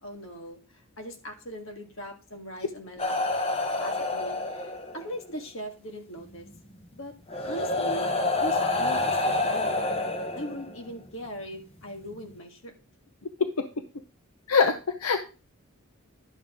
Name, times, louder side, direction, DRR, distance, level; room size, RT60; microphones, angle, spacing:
voice 1, 0.0-0.6 1.0-3.2 3.8-6.5 6.9-7.1 7.4-8.1 8.4-9.7 10.4-12.7, right 1 dB, 65° left, 4 dB, 1.9 m, -40 dB
sound 1, 3.0-5.1 6.5-6.6 7.3-10.9 12.0-12.1, left 2 dB, 25° left, 1.0 m, -28 dB
voice 2, 14.5-15.2, left 5 dB, 85° left, 8 dB, 0.7 m, -23 dB
11.0 x 7.0 x 3.7 m, 0.33 s
head